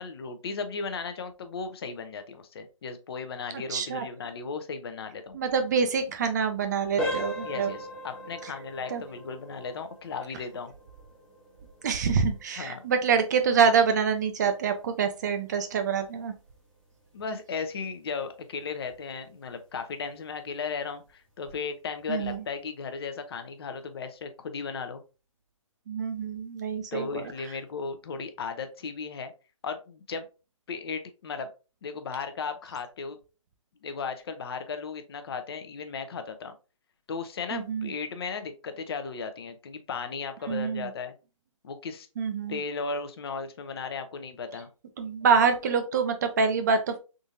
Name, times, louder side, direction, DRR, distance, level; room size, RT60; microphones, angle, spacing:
voice 1, 0.0-5.4 7.4-10.7 12.6-12.8 17.1-25.0 26.9-29.3 29.6-30.3 30.7-31.5 31.8-33.2 33.8-36.5 37.1-41.1 41.6-42.1 42.5-44.7, left 5 dB, 45° left, 9 dB, 0.5 m, -36 dB
voice 2, 3.7-4.0 5.3-7.7 8.9-9.0 11.8-16.3 22.1-22.4 25.9-27.1 37.5-37.9 40.5-40.9 42.2-42.6 45.0-46.9, right 6 dB, 35° right, 7 dB, 0.4 m, -26 dB
sound 1, 7.0-17.6 18.0-18.2 18.8-18.9 19.4-19.6, left 1 dB, 5° left, 0.7 m, -40 dB
3.6 x 2.6 x 2.7 m, 0.31 s
figure-of-eight pair, 140°, 17 cm